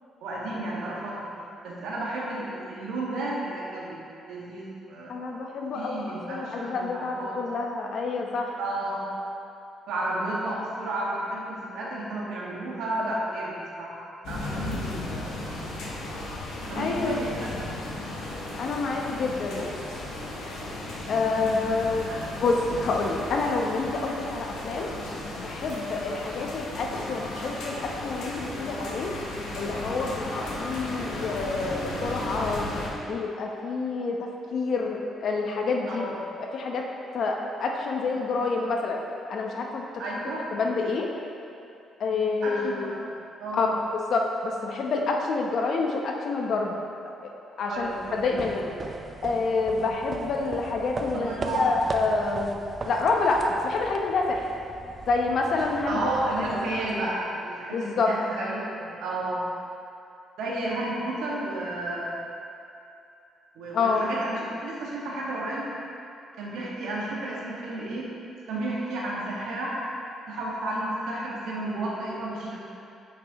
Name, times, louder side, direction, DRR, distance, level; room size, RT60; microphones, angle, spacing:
voice 1, 0.2-1.3 1.6-4.0 4.2-5.1 5.7-7.3 8.6-9.1 9.9-15.6 16.7-17.8 21.4-21.8 22.1-22.4 35.9-36.1 40.0-40.4 42.4-43.1 43.4-43.7 47.7-48.4 51.1-51.7 55.9-59.4 60.4-62.1 63.5-65.7 66.4-68.1 68.5-69.7 70.3-72.6, right 1 dB, 80° right, -6 dB, 1.7 m, -32 dB
voice 2, 5.1-8.6 16.8-17.3 18.6-19.7 21.1-24.9 25.4-29.1 29.5-32.7 33.1-36.1 36.5-36.9 37.1-39.0 39.3-40.2 40.5-41.1 42.0-42.9 43.5-46.8 47.2-47.3 47.6-48.7 49.2-52.6 52.8-54.5 55.1-56.1 56.5-56.7 57.7-58.1 63.7-64.1, left 3 dB, 60° left, 1 dB, 0.9 m, -28 dB
sound 1, 14.2-32.9, left 2 dB, 90° left, 1.2 m, -35 dB
sound 2, 47.7-57.4, right 3 dB, 35° right, 0.4 m, -39 dB
8.3 x 6.0 x 3.1 m, 2.6 s
cardioid pair, 105°, 0 cm